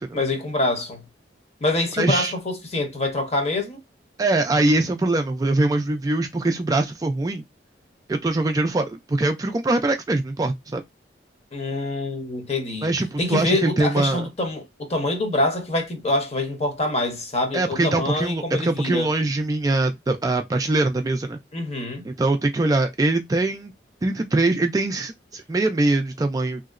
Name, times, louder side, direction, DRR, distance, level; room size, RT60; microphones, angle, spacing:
voice 1, 0.1-1.0 1.6-3.8 11.5-12.9 13.2-19.1 21.5-22.0, left 2 dB, 40° left, 0.9 m, -25 dB
voice 2, 2.0-2.3 4.2-7.4 8.1-10.8 12.8-14.3 17.5-21.4 22.0-23.7 24.0-26.6, right 2 dB, 20° right, 0.3 m, -22 dB
3.0 x 2.8 x 2.4 m
head